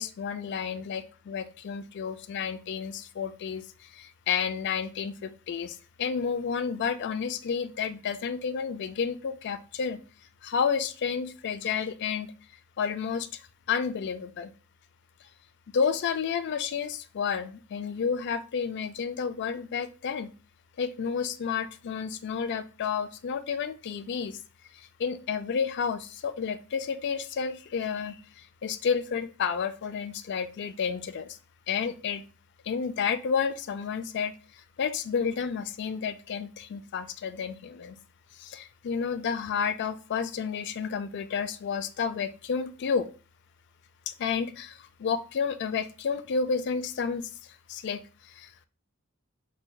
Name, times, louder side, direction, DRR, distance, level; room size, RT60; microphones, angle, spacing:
voice 1, 0.0-10.0 10.4-12.3 12.8-13.4 13.7-14.5 15.7-20.3 20.8-24.4 24.7-31.4 31.7-32.2 32.7-34.3 34.8-38.0 38.4-43.1 44.1-47.3 47.7-48.7, left 6 dB, 50° left, 12 dB, 0.3 m, -31 dB
4.3 x 3.3 x 2.2 m, 0.35 s
head